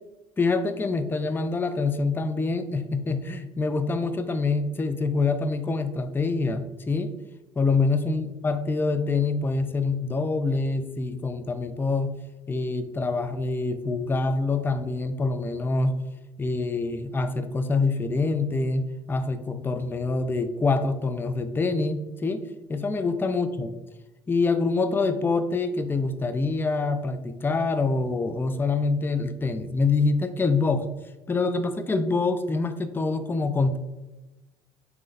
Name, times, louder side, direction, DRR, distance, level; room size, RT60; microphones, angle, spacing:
voice 1, 0.4-7.1 7.6-12.1 12.5-16.0 16.4-22.4 22.7-23.7 24.3-30.9 31.3-33.8, left 3 dB, 15° left, 10 dB, 0.4 m, -25 dB
4.3 x 3.7 x 2.6 m, 1.1 s
hypercardioid pair, 60°, 15 cm